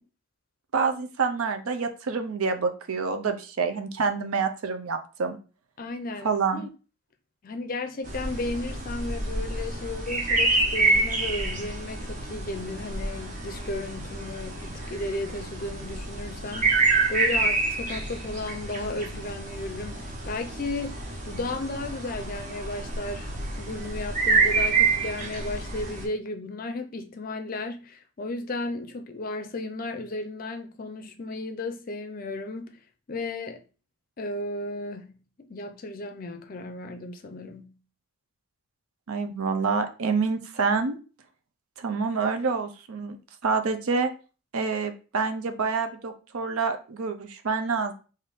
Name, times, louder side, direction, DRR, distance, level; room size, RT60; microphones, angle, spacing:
voice 1, 0.7-5.4 6.2-6.6 39.1-41.0 41.8-43.2 43.4-44.1 44.5-47.9, right 4 dB, 80° right, 0.5 m, -27 dB
voice 2, 5.8-6.7 7.4-20.9 21.2-32.8 33.1-33.6 34.2-37.8, left 2 dB, 40° left, 0.5 m, -34 dB
sound 1, 8.0-26.1, right 3 dB, 35° right, 0.9 m, -28 dB
4.0 x 2.6 x 3.5 m
head